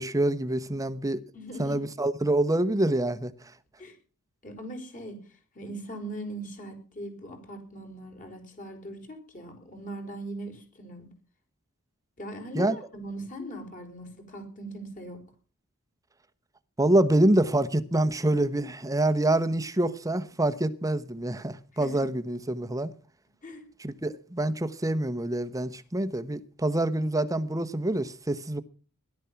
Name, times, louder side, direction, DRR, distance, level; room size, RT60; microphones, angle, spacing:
voice 1, 0.0-1.2 1.6-3.3 12.5-12.7 16.8-22.9 23.8-28.6, right 1 dB, 15° right, 1.0 m, -26 dB
voice 2, 1.3-1.8 3.8-4.0 4.4-5.2 5.5-11.1 12.2-15.2 21.7-22.1 23.4-23.7, right 1 dB, 35° left, 4.6 m, -40 dB
17.5 x 12.0 x 5.8 m
head